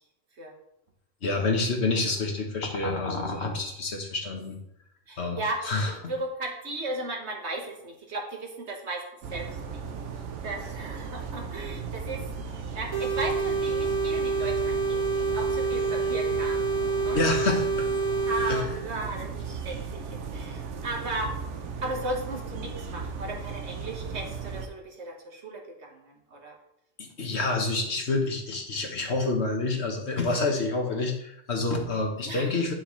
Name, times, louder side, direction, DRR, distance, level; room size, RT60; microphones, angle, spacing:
voice 1, 1.2-4.6 5.2-5.4 5.6-6.1 17.1-17.7 18.5-18.6 27.0-32.7, left 3 dB, 70° left, 2 dB, 1.6 m, -28 dB
voice 2, 5.1-5.6 6.1-9.0 9.3-9.8 10.4-15.0 15.3-16.6 17.0-17.3 18.2-21.4 21.8-26.6 32.2-32.5, right 2 dB, 70° right, 1 dB, 1.7 m, -36 dB
sound 1, 9.2-24.7, right 5 dB, 90° right, 1.1 m, -36 dB
sound 2, 12.9-18.6, right 4 dB, 25° right, 1.5 m, -27 dB
9.7 x 6.3 x 3.2 m, 0.77 s
omnidirectional pair, 1.2 m